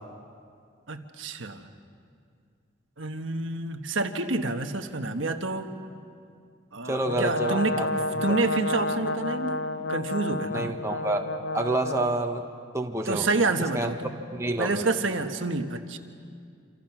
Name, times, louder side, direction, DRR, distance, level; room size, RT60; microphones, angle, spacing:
voice 1, 0.9-1.7 3.0-5.7 6.7-7.9 8.2-9.6 9.9-10.7 13.0-14.1 14.6-16.0, right 3 dB, 80° right, 5 dB, 1.3 m, -28 dB
voice 2, 6.8-7.9 10.5-12.4 12.7-13.3 13.7-13.9 14.3-14.8, right 2 dB, 15° right, 3 dB, 1.4 m, -28 dB
Brass instrument, 7.1-12.3, left 2 dB, 60° left, 0.7 m, -30 dB
27.5 x 27.0 x 6.1 m, 2.3 s
head